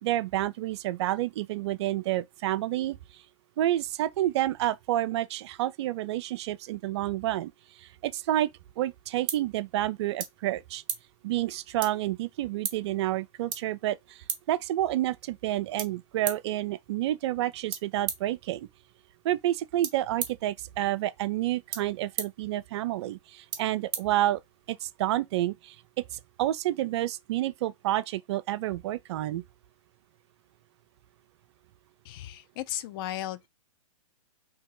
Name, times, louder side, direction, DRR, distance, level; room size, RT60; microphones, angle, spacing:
voice 1, 0.0-3.2 3.6-7.5 7.8-8.5 8.8-10.8 11.2-18.7 19.2-24.4 24.7-29.4, right 14 dB, 50° right, 0.4 m, -29 dB
sound 1, 8.5-24.8, right 9 dB, 25° right, 0.9 m, -41 dB
voice 2, 32.1-33.5, left 13 dB, 40° left, 0.5 m, -35 dB
2.9 x 2.8 x 3.7 m
hypercardioid pair, 125°, 18 cm